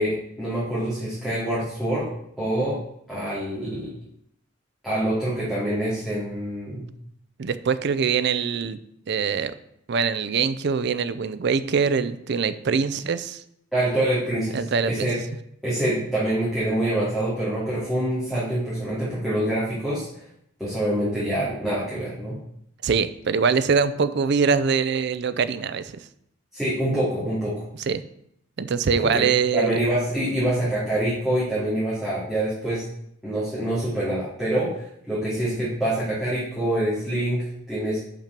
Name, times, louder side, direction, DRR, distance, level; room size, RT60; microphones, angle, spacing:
voice 1, 0.0-2.1 2.4-2.8 3.1-3.9 4.8-6.9 13.7-15.2 15.6-20.3 20.6-22.4 26.5-27.6 29.0-29.2 29.5-32.8 33.2-38.0, right 1 dB, ahead, -11 dB, 2.6 m, -26 dB
voice 2, 7.4-8.8 9.1-9.5 9.9-13.4 14.5-15.1 22.8-25.9 27.9-28.0 28.6-29.8, right 5 dB, 60° right, 14 dB, 0.5 m, -23 dB
5.9 x 5.2 x 5.9 m, 0.73 s
head